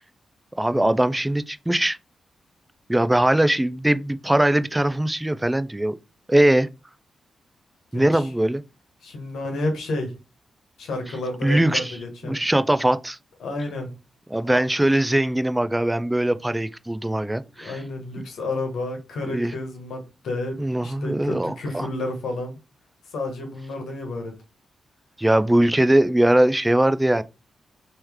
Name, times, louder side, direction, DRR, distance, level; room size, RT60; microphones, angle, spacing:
voice 1, 0.6-2.0 2.9-5.9 6.3-6.7 7.9-8.6 11.4-11.9 12.2-13.2 14.3-17.8 18.2-18.3 19.3-19.5 20.6-21.9 25.2-27.2, right 1 dB, 15° right, 0.4 m, -21 dB
voice 2, 7.9-8.3 9.0-10.1 10.8-12.4 13.4-13.9 17.6-22.6 23.1-24.3, left 2 dB, 80° left, 1.2 m, -31 dB
3.1 x 3.0 x 3.5 m
supercardioid pair, 50°, 0 cm